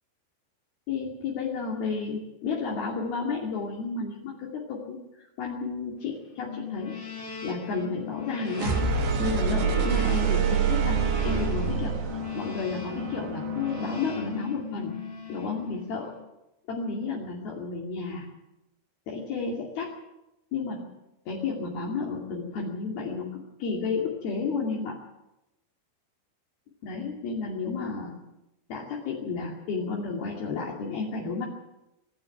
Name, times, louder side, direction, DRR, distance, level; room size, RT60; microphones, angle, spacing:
voice 1, 0.9-7.0 7.4-8.8 9.2-12.0 12.3-15.0 15.3-16.1 16.7-18.3 19.1-20.0 20.5-20.9 21.3-25.0 26.8-28.2 28.7-31.5, left 4 dB, 60° left, -2 dB, 4.3 m, -32 dB
sound 1, 6.4-16.3, left 6 dB, 25° left, 3.9 m, -38 dB
sound 2, 8.5-14.4, right 6 dB, 80° right, 4.7 m, -27 dB
24.5 x 11.5 x 9.3 m, 0.93 s
omnidirectional pair, 5.0 m